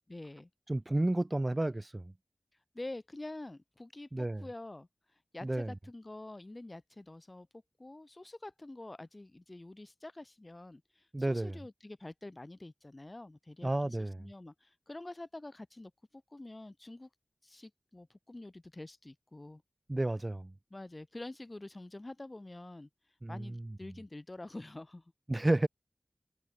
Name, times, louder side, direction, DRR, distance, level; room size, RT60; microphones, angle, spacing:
voice 1, 0.1-0.5 2.7-4.9 5.3-17.1 17.4-19.6 20.7-22.9 23.3-25.1, left 2 dB, 35° left, 2.0 m, -47 dB
voice 2, 0.7-2.1 4.1-4.4 5.4-5.7 11.1-11.6 13.6-14.2 19.9-20.5 23.2-23.6 25.3-25.7, right 1 dB, 30° right, 0.9 m, -31 dB
wide cardioid pair, 45°, 0 cm